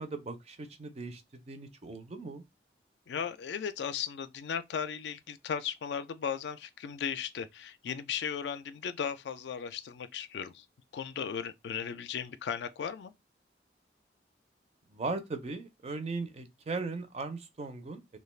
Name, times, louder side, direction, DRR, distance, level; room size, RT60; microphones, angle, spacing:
voice 1, 0.0-2.4 14.9-18.2, right 3 dB, 35° right, 0.4 m, -38 dB
voice 2, 3.1-10.6 10.9-13.1, left 7 dB, 70° left, 0.3 m, -36 dB
2.4 x 2.2 x 3.1 m
head